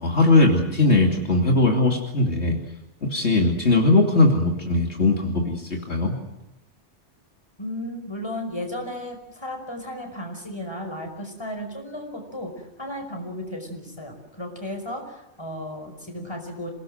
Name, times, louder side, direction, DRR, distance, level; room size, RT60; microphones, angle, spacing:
voice 1, 0.0-2.6 3.0-6.2, left 2 dB, 70° left, 1 dB, 3.0 m, -20 dB
voice 2, 7.6-16.7, left 1 dB, 25° left, 3 dB, 5.5 m, -34 dB
28.0 x 19.0 x 7.9 m, 0.93 s
omnidirectional pair, 1.2 m